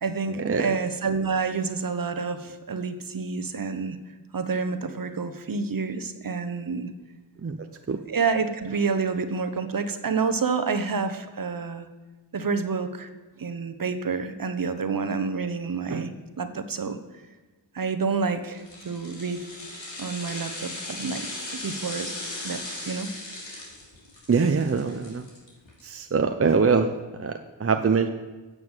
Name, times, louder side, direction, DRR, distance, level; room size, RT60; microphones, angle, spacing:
voice 1, 0.0-4.0 4.3-6.9 8.1-11.9 12.3-13.1 13.4-17.0 17.7-19.4 19.7-22.1 22.4-23.1, right 5 dB, 45° right, 9 dB, 1.1 m, -28 dB
sound 1, 18.5-25.8 26.2-26.3, left 2 dB, 75° left, 3.1 m, -38 dB
voice 2, 24.3-25.2 25.8-26.9 27.2-28.1, right 5 dB, 30° right, 6 dB, 0.7 m, -23 dB
9.6 x 7.0 x 7.4 m, 1.2 s
cardioid pair, 45°, 46 cm